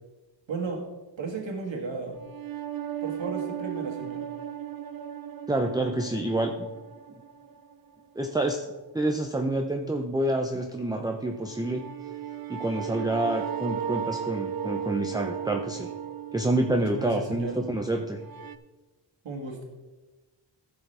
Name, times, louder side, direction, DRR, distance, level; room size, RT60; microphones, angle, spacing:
voice 1, 0.5-0.8 1.2-2.2 3.0-4.3 16.7-17.6 19.2-19.6, right 3 dB, 80° right, 1 dB, 1.9 m, -34 dB
sound 1, 2.2-8.0 11.3-18.6, right 9 dB, 55° right, 0.6 m, -36 dB
voice 2, 5.5-6.7 8.2-8.7 8.9-11.8 12.5-15.9 16.3-18.2, right 1 dB, 10° right, 3 dB, 0.6 m, -28 dB
14.5 x 7.0 x 3.4 m, 1.2 s
wide cardioid pair, 105°, 44 cm